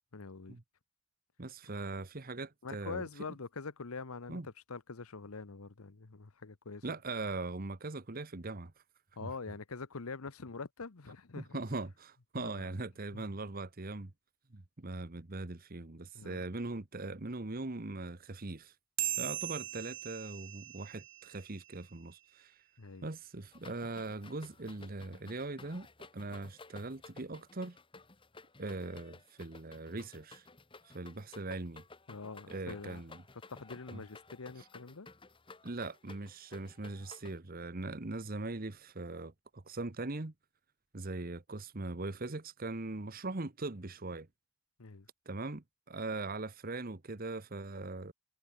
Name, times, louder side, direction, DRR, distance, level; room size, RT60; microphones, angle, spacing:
voice 1, 0.1-0.6 2.6-6.8 9.2-11.6 12.4-12.7 13.1-13.2 16.1-16.4 22.8-23.1 32.1-33.0 33.5-35.1 44.8-45.1, left 4 dB, 90° left, 1.0 m, -44 dB
voice 2, 1.4-3.0 4.3-4.5 6.8-8.7 9.2-9.3 11.4-14.1 14.5-18.7 19.2-22.6 23.0-25.9 26.1-27.8 28.6-30.5 30.8-31.8 32.5-33.2 33.9-34.0 34.6-34.7 35.6-40.3 40.9-44.3 45.2-48.1, right 2 dB, 45° right, 1.1 m, -40 dB
sound 1, 19.0-21.8, right 16 dB, 60° right, 1.8 m, -39 dB
sound 2, 23.5-37.4, left 3 dB, 25° left, 1.5 m, -55 dB
head